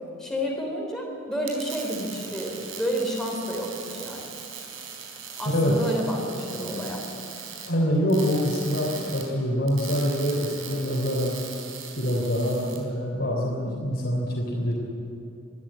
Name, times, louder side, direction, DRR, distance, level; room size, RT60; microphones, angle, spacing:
voice 1, 0.2-4.3 5.4-7.0, equal, ahead, -2 dB, 3.3 m, -30 dB
sound 1, 1.3-12.8, right 7 dB, 80° right, 4.3 m, -40 dB
voice 2, 7.7-11.3 12.0-14.7, equal, 55° left, -4 dB, 3.6 m, -25 dB
22.5 x 13.5 x 8.8 m, 2.8 s
head